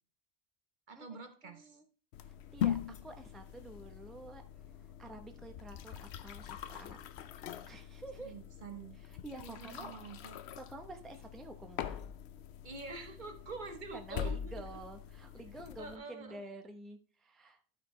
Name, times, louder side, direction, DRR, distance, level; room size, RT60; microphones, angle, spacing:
voice 1, 0.9-1.8 8.2-9.0 9.4-10.4 12.6-14.7 15.8-16.4, right 4 dB, 50° right, 6 dB, 1.1 m, -46 dB
voice 2, 1.4-1.8 2.2-4.4 4.7-7.0 7.6-8.3 9.0-9.9 10.6-12.0 13.9-17.6, right 2 dB, ahead, 5 dB, 0.7 m, -49 dB
sound 1, 2.1-16.0, left 9 dB, 85° left, 0.9 m, -42 dB
12.5 x 5.1 x 3.1 m, 0.39 s
omnidirectional pair, 1.1 m